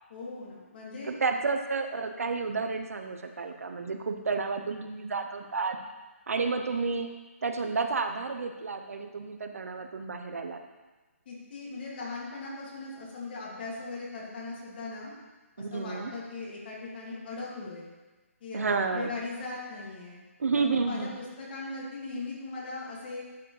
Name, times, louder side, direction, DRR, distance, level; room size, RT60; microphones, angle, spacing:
voice 1, 0.1-1.4 11.3-15.1 15.6-17.9 18.4-18.6 18.9-20.2 20.6-21.1 21.4-23.2, left 3 dB, 40° left, -4 dB, 2.3 m, -39 dB
voice 2, 1.0-5.8 6.3-7.1 7.4-10.6 15.6-16.1 18.5-19.1 20.4-21.1, right 4 dB, 75° right, 6 dB, 0.8 m, -31 dB
11.5 x 4.7 x 3.2 m, 1.2 s
hypercardioid pair, 150°, 8 cm